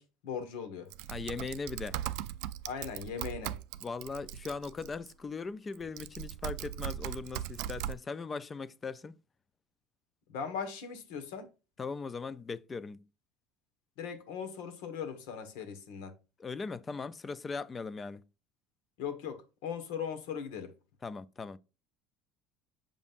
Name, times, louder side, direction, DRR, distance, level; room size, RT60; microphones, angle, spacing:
voice 1, 0.0-0.9 2.6-3.6 10.3-11.5 14.0-16.1 19.0-20.7, left 7 dB, 80° left, 1.4 m, -39 dB
Typing, 0.9-5.1 5.7-8.0, right 12 dB, 75° right, 0.4 m, -39 dB
voice 2, 1.1-2.0 3.8-9.1 11.8-13.0 16.4-18.2 21.0-21.6, left 4 dB, 20° left, 0.4 m, -39 dB
7.2 x 5.4 x 2.5 m
cardioid pair, 130°, 0 cm